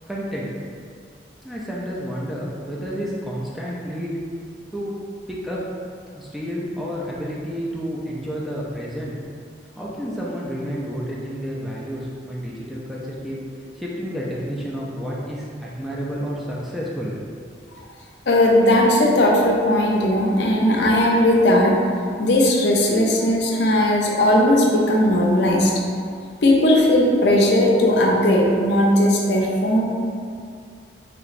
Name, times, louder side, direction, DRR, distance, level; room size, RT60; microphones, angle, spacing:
voice 1, 0.1-0.5 1.4-4.1 4.7-5.0 5.3-5.6 6.1-9.1 9.7-17.1, equal, ahead, -6 dB, 0.3 m, -30 dB
voice 2, 18.3-21.7 22.2-25.7 26.4-29.8, left 1 dB, 70° left, -2 dB, 0.5 m, -17 dB
3.4 x 2.9 x 2.5 m, 2.2 s
head